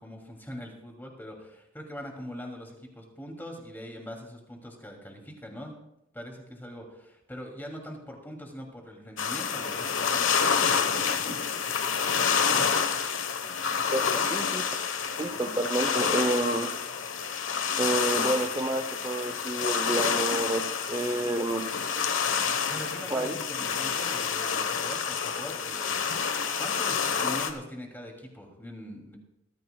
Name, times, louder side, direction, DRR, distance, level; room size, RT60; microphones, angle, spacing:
voice 1, 0.0-5.7 6.1-11.4 14.0-14.2 22.6-26.2 26.6-29.2, equal, 10° left, 1 dB, 2.8 m, -42 dB
sound 1, 9.2-27.5, left 6 dB, 75° left, 1.2 m, -28 dB
voice 2, 14.3-14.6 15.2-16.7 17.8-21.7 23.1-23.4, right 1 dB, 20° right, 5 dB, 0.8 m, -29 dB
22.5 x 14.0 x 2.3 m, 0.83 s
head